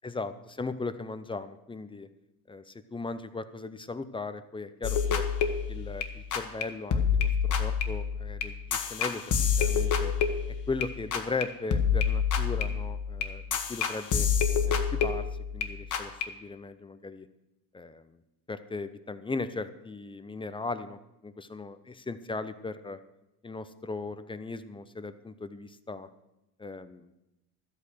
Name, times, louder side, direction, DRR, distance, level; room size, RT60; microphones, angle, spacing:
voice 1, 0.0-2.1 2.5-5.2 5.7-9.2 9.6-10.1 10.7-14.3 14.7-15.2 15.5-17.3 17.7-18.2 18.5-23.0 23.4-26.1 26.6-27.2, left 3 dB, 10° left, 12 dB, 0.6 m, -38 dB
sound 1, 4.8-6.6 6.9-11.4 11.7-15.7 15.9-16.2, left 7 dB, 40° left, 1.4 m, -27 dB
12.0 x 8.5 x 6.2 m, 0.94 s
supercardioid pair, 110°, 45 cm